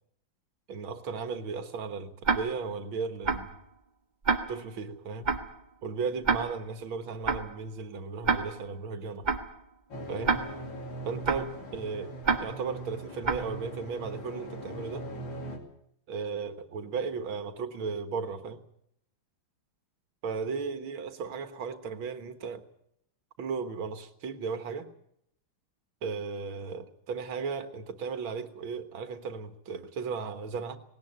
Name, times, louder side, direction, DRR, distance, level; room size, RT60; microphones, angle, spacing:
voice 1, 0.7-3.5 4.5-5.3 5.8-9.3 10.1-10.3 11.0-12.1 12.4-15.1 16.1-18.6 20.2-22.6 23.4-24.9 26.0-30.8, right 5 dB, 75° right, 2.2 m, -35 dB
Tick-tock, 2.2-2.7 3.2-3.6 4.2-4.7 5.2-5.6 6.2-6.7 7.2-7.6 8.2-8.7 9.2-9.6 10.2-10.7 11.2-11.6 12.2-12.7 13.2-13.6, right 4 dB, 25° right, 1.1 m, -29 dB
sound 1, 9.9-15.6, right 1 dB, 65° left, 3.4 m, -41 dB
19.5 x 18.0 x 8.9 m
omnidirectional pair, 2.3 m